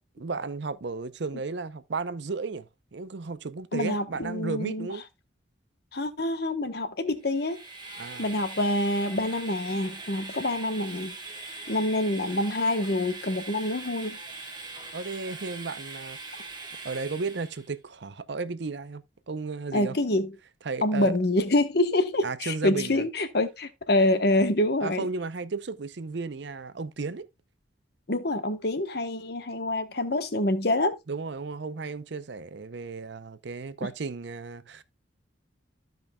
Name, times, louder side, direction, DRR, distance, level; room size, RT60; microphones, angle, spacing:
voice 1, 0.2-5.0 8.0-8.4 14.9-16.4 16.8-19.9 20.6-21.2 22.2-23.0 24.8-27.3 31.1-34.8, right 4 dB, 65° right, 0.6 m, -34 dB
voice 2, 3.7-4.9 5.9-7.6 8.2-11.1 11.7-14.2 19.7-20.3 20.8-25.1 28.1-31.0, left 1 dB, 55° left, 1.1 m, -26 dB
Train, 7.2-17.7, right 3 dB, 25° right, 1.4 m, -41 dB
15.0 x 5.2 x 2.3 m
head